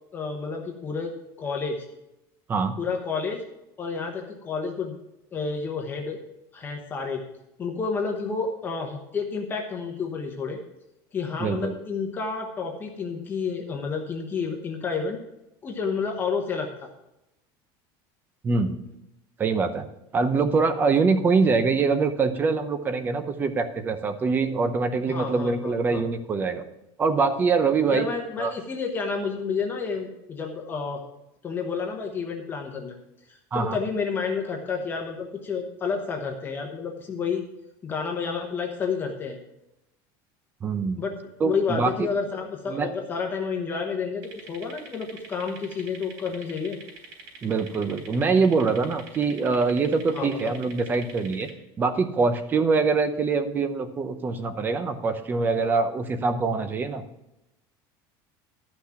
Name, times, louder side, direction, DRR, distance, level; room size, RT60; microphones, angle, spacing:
voice 1, 0.1-1.1 1.4-1.8 2.8-3.4 3.8-4.9 5.3-6.2 6.5-7.2 7.6-10.6 11.1-15.2 15.6-16.9 25.1-26.0 27.9-31.0 31.4-33.0 33.5-37.4 37.8-39.4 41.0-41.1 41.4-46.8 50.1-50.5, left 5 dB, 20° left, 1 dB, 1.0 m, -30 dB
voice 2, 11.4-11.7 18.4-18.8 19.4-19.9 20.1-26.6 27.0-28.1 28.4-28.5 33.5-33.8 40.6-41.0 41.4-42.1 42.7-42.9 47.4-51.5 51.8-57.0, right 4 dB, 20° right, 10 dB, 0.7 m, -24 dB
sound 1, 44.2-51.5, right 4 dB, 65° right, 3.5 m, -45 dB
12.0 x 6.1 x 5.7 m, 0.88 s
cardioid pair, 175°, 11 cm